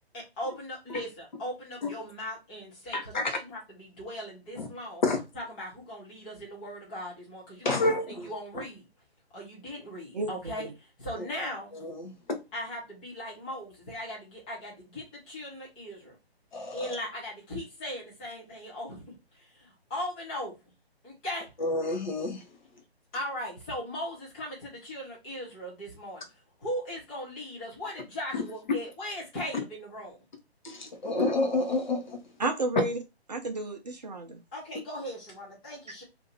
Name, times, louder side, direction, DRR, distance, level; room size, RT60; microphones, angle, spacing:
voice 1, 0.1-5.0 5.3-8.9 9.3-11.7 12.5-16.2 16.7-19.0 19.3-20.5 21.0-21.5 23.1-30.2 34.5-36.0, equal, 10° left, 0.6 m, -38 dB
voice 2, 2.9-3.2 4.6-4.7 5.0-5.2 7.6-8.3 11.2-11.3 11.8-12.4 16.5-16.9 21.6-22.4 28.3-28.4 30.6-32.2, left 2 dB, 45° left, 0.9 m, -29 dB
voice 3, 32.4-33.0 33.3-34.4, right 2 dB, 40° right, 0.6 m, -31 dB
2.7 x 2.5 x 3.9 m
figure-of-eight pair, 145°, 33 cm